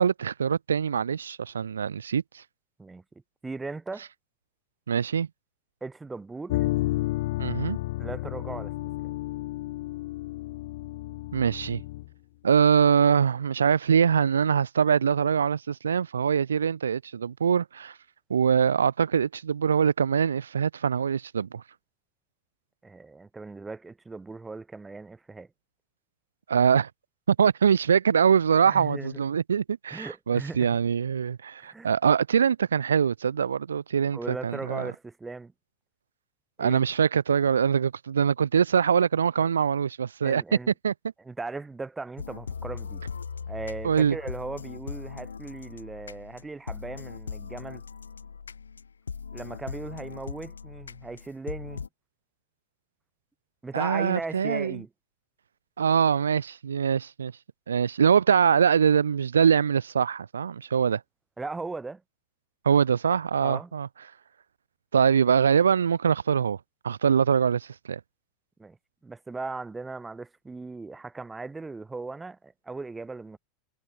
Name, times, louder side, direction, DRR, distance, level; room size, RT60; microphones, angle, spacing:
voice 1, 0.0-2.2 4.9-5.3 7.4-7.8 11.3-11.8 12.4-17.9 18.3-21.6 26.5-26.9 27.3-34.9 36.6-40.4 40.8-40.9 43.8-44.2 53.7-54.8 55.8-57.3 57.7-61.0 62.6-63.9 64.9-66.6 66.8-68.0, right 7 dB, 85° right, 0.7 m, -23 dB
voice 2, 3.4-4.0 5.8-6.7 8.0-8.7 22.8-25.5 28.6-29.2 29.9-30.8 31.6-31.9 34.1-35.5 36.6-36.8 39.4-39.5 40.2-40.7 41.2-43.0 43.5-47.8 49.3-51.9 53.6-54.9 61.4-62.0 63.4-63.7 68.6-68.8 69.0-73.4, right 3 dB, 15° right, 6.6 m, -38 dB
sound 1, 6.5-12.1, left 18 dB, 65° left, 3.6 m, -31 dB
sound 2, 42.2-51.9, left 6 dB, 90° left, 2.6 m, -39 dB
hypercardioid pair, 90°, 0 cm